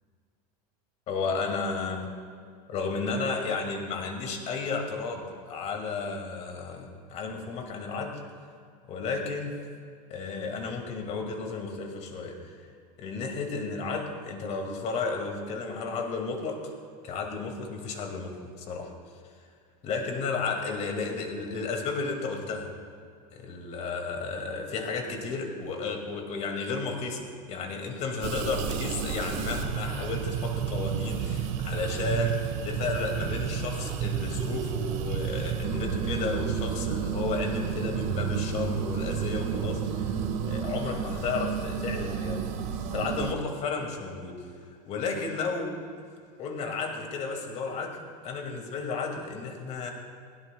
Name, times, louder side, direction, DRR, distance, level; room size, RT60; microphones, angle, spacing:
voice 1, 1.1-2.1 2.7-8.2 8.8-9.6 10.1-12.5 13.0-16.7 17.0-18.9 19.8-22.7 23.3-42.4 42.9-44.4 44.9-45.8 46.4-49.9, left 4 dB, 35° left, 3 dB, 2.1 m, -33 dB
sound 1, 28.2-43.3, right 8 dB, 55° right, 1.4 m, -31 dB
20.0 x 17.5 x 2.3 m, 2.3 s
supercardioid pair, 150°, 20 cm